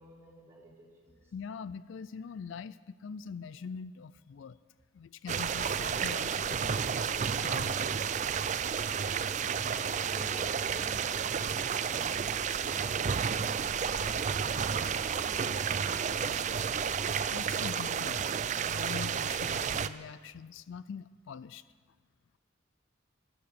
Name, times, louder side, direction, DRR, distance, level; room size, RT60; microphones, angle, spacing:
voice 1, 0.0-1.3 10.0-14.6 15.1-16.7, right 1 dB, 10° right, -7 dB, 4.1 m, -52 dB
voice 2, 1.3-4.6 4.9-6.9 7.4-8.0 17.3-21.6, left 6 dB, 75° left, 17 dB, 0.4 m, -43 dB
sound 1, 5.3-19.9, right 7 dB, 35° right, 0.4 m, -31 dB
12.5 x 12.0 x 6.7 m, 1.5 s
head